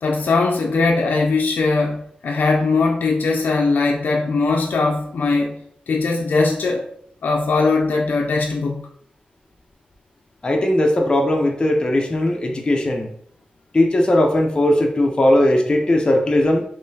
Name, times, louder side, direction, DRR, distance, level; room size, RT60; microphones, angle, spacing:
voice 1, 0.0-6.9 7.2-8.9, left 3 dB, 80° left, 1 dB, 0.4 m, -20 dB
voice 2, 10.4-13.1 13.7-16.6, left 1 dB, 30° left, 1 dB, 0.5 m, -18 dB
3.7 x 3.0 x 2.7 m, 0.65 s
wide cardioid pair, 80°, 3 cm